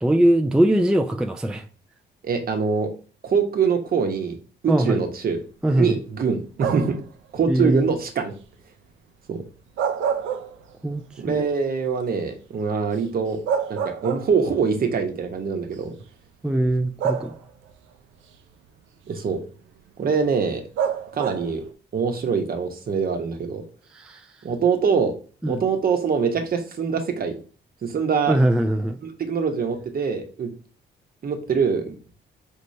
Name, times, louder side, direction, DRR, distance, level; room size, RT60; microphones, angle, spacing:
voice 1, 0.0-1.6 4.7-5.0 5.6-6.0 7.5-7.9 10.8-11.0 11.3-11.4 16.4-17.3 23.9-24.2 25.4-25.6 28.3-29.0, right 1 dB, 5° right, 0.4 m, -21 dB
voice 2, 2.2-2.9 3.2-4.4 4.6-5.4 5.8-7.0 7.3-8.3 9.3-9.4 11.2-13.4 13.7-15.9 19.1-19.4 20.0-20.6 21.1-21.6 21.9-23.6 24.4-25.1 25.4-27.4 27.8-28.4 29.0-30.5 31.2-32.0, right 5 dB, 50° right, 0.9 m, -24 dB
sound 1, 6.6-7.1 9.6-11.0 11.4-11.5 13.0-13.1 13.5-14.6 15.6-15.7 17.0-17.7 20.8-21.6, right 7 dB, 80° right, 0.5 m, -27 dB
4.4 x 3.2 x 2.6 m
cardioid pair, 90°, 20 cm